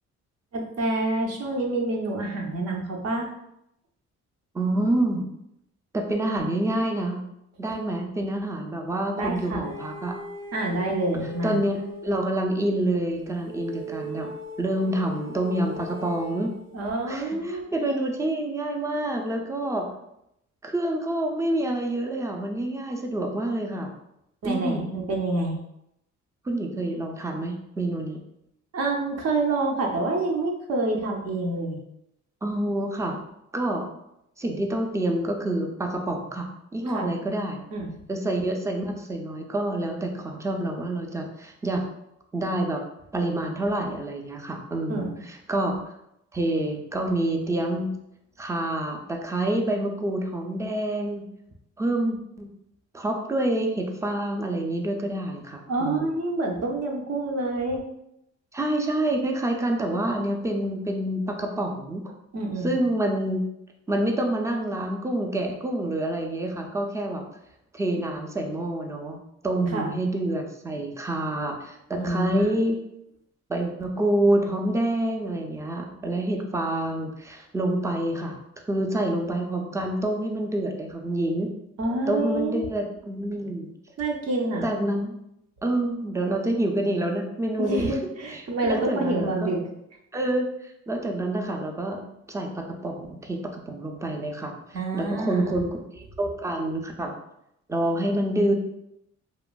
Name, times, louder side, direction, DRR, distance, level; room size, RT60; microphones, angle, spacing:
voice 1, 0.5-3.3 9.2-9.7 10.5-11.6 16.7-17.7 24.4-25.6 28.7-31.8 36.9-37.1 37.7-37.9 44.9-45.1 55.7-57.8 62.3-62.7 69.7-69.9 71.9-72.5 81.8-82.7 84.0-84.7 87.6-89.6 94.7-95.6, right 2 dB, 55° right, 0 dB, 0.7 m, -27 dB
voice 2, 4.5-5.3 5.9-7.2 7.6-10.1 11.4-14.3 14.6-16.5 17.1-19.9 20.6-23.9 24.4-24.9 26.4-28.2 32.4-33.2 33.5-33.8 34.4-37.6 38.1-41.8 42.3-42.8 43.1-45.7 46.3-47.9 48.4-51.3 51.8-52.5 52.9-56.1 58.5-62.1 62.6-63.4 63.9-67.2 67.7-72.8 73.5-78.4 78.7-81.5 82.1-83.7 84.6-85.2 85.6-88.0 88.3-89.6 90.1-90.5 90.9-92.0 92.3-97.1 97.7-98.5, right 1 dB, 10° right, 2 dB, 0.4 m, -27 dB
sound 1, 9.6-12.2 13.4-16.7, equal, 90° right, 1.2 m, -39 dB
2.9 x 2.4 x 2.3 m, 0.80 s
cardioid pair, 90°, 30 cm